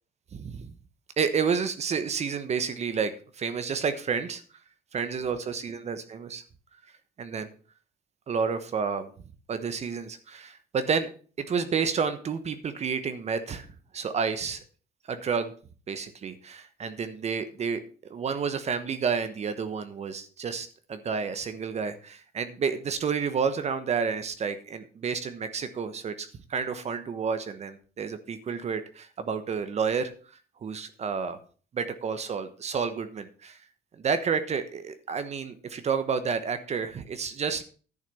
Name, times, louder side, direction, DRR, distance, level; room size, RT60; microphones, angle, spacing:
voice 1, 0.3-0.7 1.2-4.4 4.9-6.4 7.2-7.5 8.3-9.1 9.5-11.1 11.4-13.7 13.9-14.6 15.1-15.5 15.9-17.8 18.1-30.1 30.6-31.4 31.7-33.6 34.0-37.6, right 6 dB, 40° right, 11 dB, 1.1 m, -30 dB
10.5 x 6.4 x 5.5 m, 0.39 s
cardioid pair, 110°, 17 cm